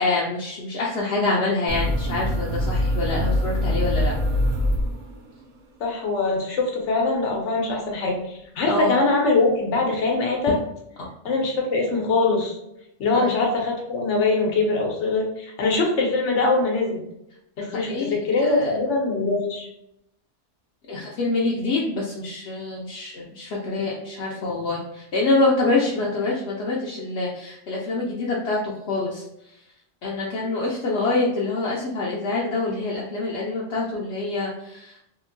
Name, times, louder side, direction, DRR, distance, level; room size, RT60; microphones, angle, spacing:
voice 1, 0.0-4.1 8.6-8.9 13.1-13.3 17.7-18.7 20.9-29.2 30.0-35.0, left 2 dB, 70° left, -4 dB, 0.8 m, -26 dB
sound 1, 1.7-5.4, left 1 dB, 60° right, 0.5 m, -24 dB
voice 2, 5.8-8.2 8.6-10.5 11.2-12.6 13.0-17.0 17.6-19.7, left 3 dB, 85° left, 0 dB, 1.1 m, -22 dB
2.8 x 2.5 x 2.5 m, 0.80 s
omnidirectional pair, 1.2 m